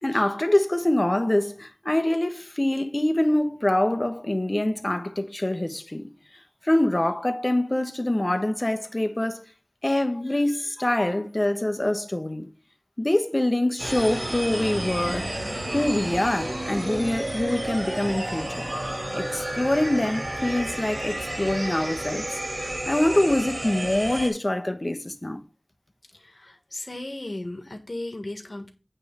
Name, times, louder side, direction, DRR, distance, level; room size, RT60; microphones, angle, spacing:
voice 1, 0.0-6.1 6.6-9.4 9.8-12.5 13.0-15.3 15.7-18.7 19.1-25.4, left 1 dB, 40° left, 1.2 m, -25 dB
sound 1, 13.8-24.3, right 1 dB, 90° right, 3.0 m, -31 dB
voice 2, 26.1-28.7, left 1 dB, 75° left, 1.6 m, -36 dB
8.9 x 3.5 x 6.8 m
wide cardioid pair, 40°, 0 cm